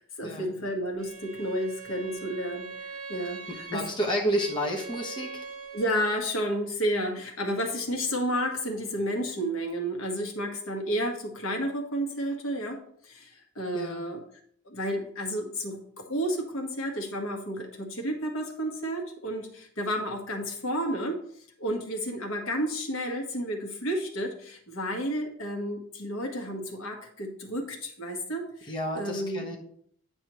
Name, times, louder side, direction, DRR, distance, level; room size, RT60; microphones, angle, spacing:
voice 1, 0.0-3.9 5.7-14.2 14.6-21.2 21.6-29.5, equal, 65° left, 2 dB, 1.5 m, -31 dB
Bowed string instrument, 1.0-6.1, right 5 dB, 80° right, 1.0 m, -42 dB
voice 2, 3.7-5.5 13.7-14.0 28.7-29.6, equal, 20° left, -1 dB, 1.1 m, -30 dB
9.9 x 6.2 x 3.1 m, 0.62 s
head